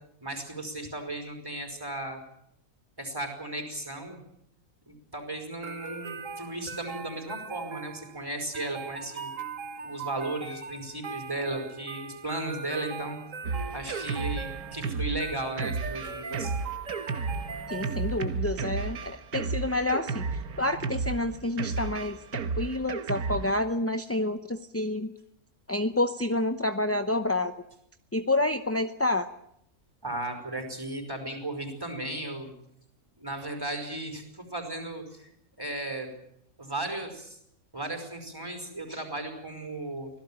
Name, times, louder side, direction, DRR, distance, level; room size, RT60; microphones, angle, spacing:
voice 1, 0.2-2.2 3.0-4.2 4.9-9.3 9.8-13.2 13.7-16.5 30.0-32.5 33.2-35.3 35.6-36.1 36.6-37.4 37.7-40.1, right 2 dB, 15° right, 5 dB, 5.4 m, -35 dB
sound 1, 5.6-18.4, right 5 dB, 60° right, 1.9 m, -40 dB
Drum kit, 13.4-23.5, right 4 dB, 85° right, 1.8 m, -33 dB
voice 2, 17.7-25.1 25.7-27.5 28.1-29.3, left 2 dB, 15° left, 8 dB, 0.6 m, -29 dB
25.0 x 17.5 x 8.9 m, 0.73 s
omnidirectional pair, 1.6 m